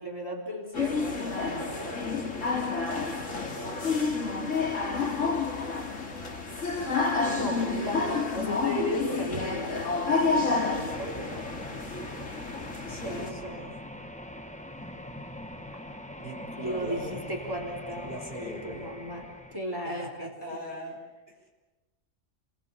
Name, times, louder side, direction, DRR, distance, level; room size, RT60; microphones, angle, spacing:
voice 1, 0.0-1.9 7.3-11.6 13.0-13.8 16.6-20.3, equal, 15° right, -1 dB, 3.9 m, -36 dB
sound 1, 0.7-13.3, left 4 dB, 80° left, 2.7 m, -29 dB
voice 2, 2.5-3.1 3.5-4.6 12.9-13.7 16.2-17.1 17.9-19.0 19.8-21.0 21.3-21.4, equal, 40° left, -1 dB, 6.3 m, -42 dB
sound 2, 10.9-19.6, left 1 dB, 5° left, 1.2 m, -42 dB
30.0 x 22.5 x 8.3 m, 1.2 s
omnidirectional pair, 1.3 m